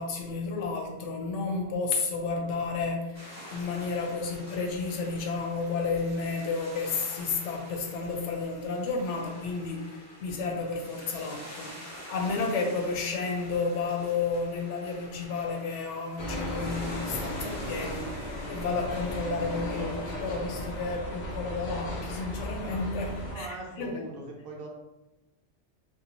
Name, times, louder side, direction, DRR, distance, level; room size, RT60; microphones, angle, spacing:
voice 1, 0.0-11.8 12.1-18.1 18.5-24.0, left 4 dB, 85° left, 2 dB, 0.9 m, -32 dB
sound 1, 3.1-20.1, equal, 15° left, 0.6 m, -47 dB
sound 2, 16.2-23.4, left 1 dB, 60° left, 0.5 m, -35 dB
voice 2, 23.2-24.7, right 2 dB, 60° right, -1 dB, 0.7 m, -40 dB
2.7 x 2.1 x 2.8 m, 1.0 s
omnidirectional pair, 1.2 m